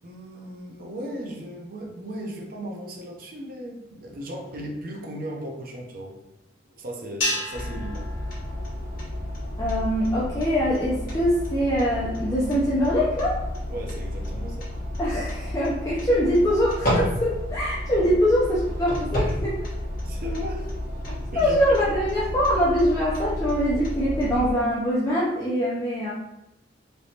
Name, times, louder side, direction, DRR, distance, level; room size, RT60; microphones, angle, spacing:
voice 1, 0.0-6.2 6.7-8.1 13.7-14.7 18.0-18.1 20.0-20.7 21.3-21.8, equal, 50° right, 0 dB, 0.6 m, -36 dB
sound 1, 7.2-9.6, left 1 dB, 85° left, 1.2 m, -32 dB
sound 2, 7.5-24.5, left 1 dB, 50° left, 1.2 m, -31 dB
voice 2, 9.6-13.4 15.0-19.6 21.4-26.1, equal, 15° left, -7 dB, 0.5 m, -23 dB
3.3 x 3.0 x 2.7 m, 0.89 s
head